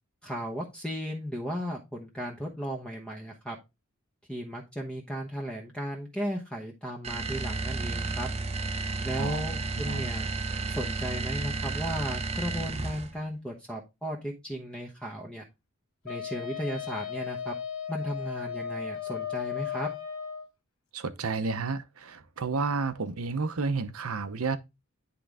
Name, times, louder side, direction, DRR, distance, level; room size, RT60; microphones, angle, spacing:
voice 1, 0.2-3.6 4.3-8.3 9.0-10.3 10.7-15.4 16.0-17.5 17.9-19.9, equal, 5° left, 1.0 m, -35 dB
sound 1, 7.0-13.2, right 3 dB, 30° right, 0.7 m, -32 dB
voice 2, 9.1-9.4 9.9-10.1 20.9-24.6, right 4 dB, 75° right, 0.8 m, -31 dB
Wind instrument woodwind instrument, 16.1-20.5, left 8 dB, 75° left, 1.2 m, -35 dB
10.0 x 3.8 x 3.5 m
head